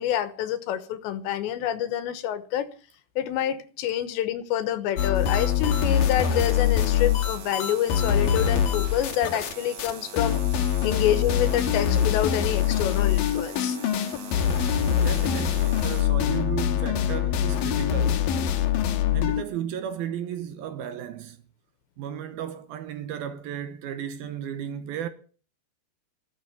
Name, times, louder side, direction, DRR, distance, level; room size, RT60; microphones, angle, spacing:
voice 1, 0.0-2.7 3.2-10.4 10.8-13.8, left 11 dB, 85° left, 3.4 m, -27 dB
sound 1, 5.0-9.5 9.8-9.9 10.2-19.4, left 9 dB, 65° left, 2.6 m, -24 dB
sound 2, 5.1-16.0, right 8 dB, 55° right, 2.1 m, -43 dB
voice 2, 15.0-18.4 19.1-21.4 22.0-25.1, right 9 dB, 70° right, 2.5 m, -34 dB
15.0 x 12.5 x 7.1 m
omnidirectional pair, 5.0 m